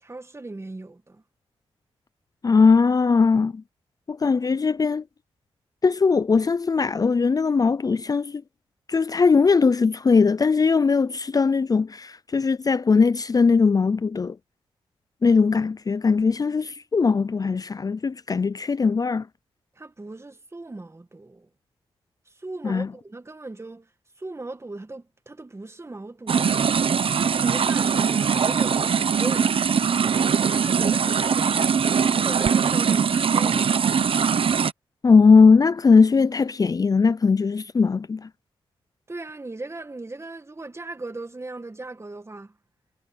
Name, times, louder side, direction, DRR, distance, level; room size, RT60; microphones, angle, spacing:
voice 1, 0.0-1.2 19.8-21.5 22.3-23.9 24.2-29.6 30.6-33.8 39.1-42.5, right 2 dB, 25° right, 2.0 m, -38 dB
voice 2, 2.4-3.6 4.1-5.0 5.8-8.4 8.9-14.4 15.2-19.3 22.6-22.9 35.0-38.3, left 4 dB, 35° left, 0.5 m, -19 dB
sound 1, 26.3-34.7, right 6 dB, 60° right, 1.0 m, -21 dB
cardioid pair, 60°, 11 cm